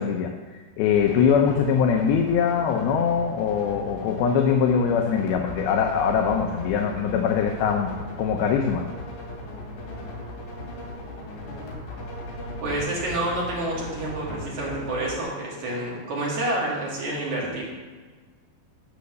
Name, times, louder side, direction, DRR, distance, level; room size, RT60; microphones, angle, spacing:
voice 1, 0.0-7.9 8.2-8.9, left 7 dB, 85° left, 2 dB, 2.7 m, -22 dB
sound 1, 0.9-15.2, left 1 dB, 70° left, 4.4 m, -37 dB
voice 2, 12.6-17.6, right 1 dB, 55° right, -4 dB, 3.5 m, -28 dB
13.5 x 5.3 x 6.8 m, 1.4 s
omnidirectional pair, 4.2 m